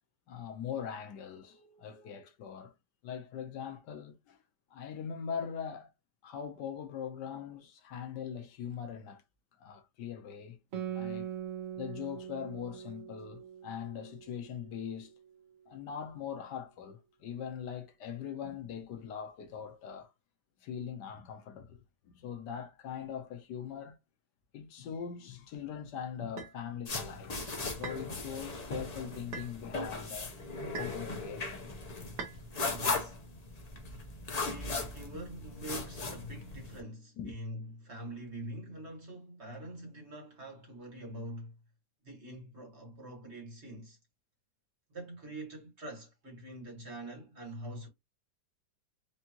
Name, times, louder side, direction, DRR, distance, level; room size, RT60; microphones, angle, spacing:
voice 1, 0.3-2.7 3.0-4.4 4.7-5.9 6.2-9.2 9.6-10.6 10.9-11.3 11.8-15.1 15.7-20.1 20.6-24.0 24.5-27.5 27.8-30.3 30.7-31.7 32.0-32.1 37.2-37.3, left 8 dB, 85° left, 1.5 m, -41 dB
Guitar, 10.7-15.7, right 10 dB, 60° right, 1.1 m, -42 dB
sound 1, 26.4-26.6 27.8-28.1 29.3-29.5 30.7-31.1 32.2-32.4, right 5 dB, 75° right, 1.7 m, -41 dB
sound 2, 26.9-36.8, left 3 dB, 35° left, 0.6 m, -38 dB
voice 2, 32.6-33.2 34.4-41.5 42.0-44.0 44.9-47.9, right 1 dB, 40° right, 1.7 m, -44 dB
4.9 x 2.6 x 2.9 m
omnidirectional pair, 1.8 m